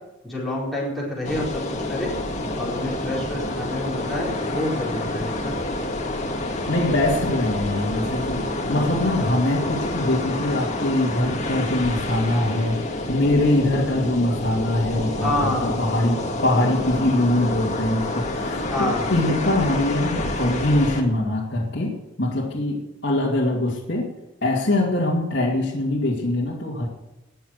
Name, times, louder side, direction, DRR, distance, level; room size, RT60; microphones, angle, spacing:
voice 1, 0.2-1.6 1.9-2.1 2.6-5.5 15.2-15.7 18.7-19.1, left 1 dB, ahead, -7 dB, 4.5 m, -27 dB
sound 1, 1.2-21.0, left 1 dB, 35° left, 1.9 m, -28 dB
voice 2, 6.7-12.8 13.1-21.9 22.2-24.1 24.4-26.9, left 1 dB, 60° left, -4 dB, 2.3 m, -23 dB
20.0 x 6.7 x 6.4 m, 0.96 s
head